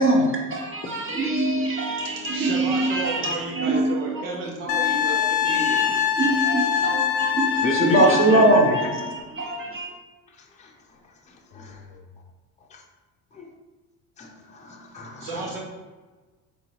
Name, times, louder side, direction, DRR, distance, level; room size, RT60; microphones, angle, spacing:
voice 1, 0.0-3.9 4.1-4.2 5.1-9.9, right 2 dB, 30° right, -1 dB, 1.0 m, -23 dB
voice 2, 2.0-5.8 15.2-15.6, right 2 dB, 75° right, -2 dB, 1.2 m, -33 dB
Wind instrument woodwind instrument, 4.7-8.9 11.6-11.7, left 9 dB, 75° left, 0.6 m, -24 dB
voice 3, 7.6-8.9 10.6-10.7 11.3-11.8 12.7-12.8 13.3-13.5 14.2-15.6, left 2 dB, 15° left, 0 dB, 0.6 m, -31 dB
3.6 x 3.4 x 3.0 m, 1.3 s
hypercardioid pair, 75°, 43 cm